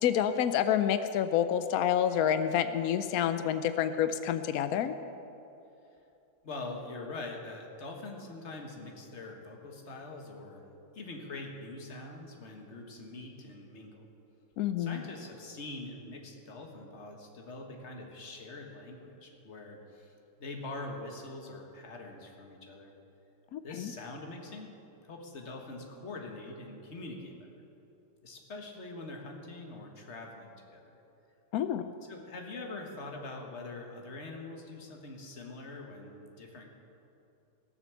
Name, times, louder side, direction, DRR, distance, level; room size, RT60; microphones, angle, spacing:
voice 1, 0.0-4.9 14.6-15.0 23.5-23.9 31.5-31.8, left 9 dB, 90° left, 11 dB, 0.8 m, -28 dB
voice 2, 6.4-10.7 10.9-14.1 14.8-20.1 20.4-22.9 23.6-27.5 28.2-30.9 32.1-36.7, left 2 dB, 40° left, 2 dB, 1.5 m, -44 dB
17.5 x 6.9 x 7.0 m, 2.8 s
omnidirectional pair, 2.1 m